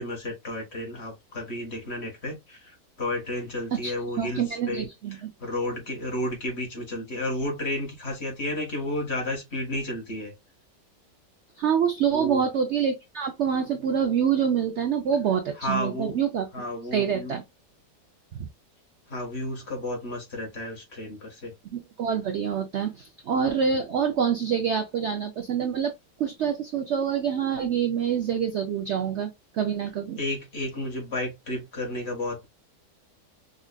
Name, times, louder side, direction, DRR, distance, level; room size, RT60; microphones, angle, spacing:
voice 1, 0.0-4.8 5.1-10.3 12.1-12.4 15.5-16.2 16.5-17.3 19.1-21.5 30.2-32.5, left 1 dB, 40° left, 1.6 m, -32 dB
voice 2, 3.7-5.3 11.6-16.4 16.9-17.4 18.3-18.5 21.7-25.9 26.2-30.2, right 7 dB, 70° right, 0.6 m, -26 dB
5.3 x 2.5 x 2.2 m
omnidirectional pair, 1.8 m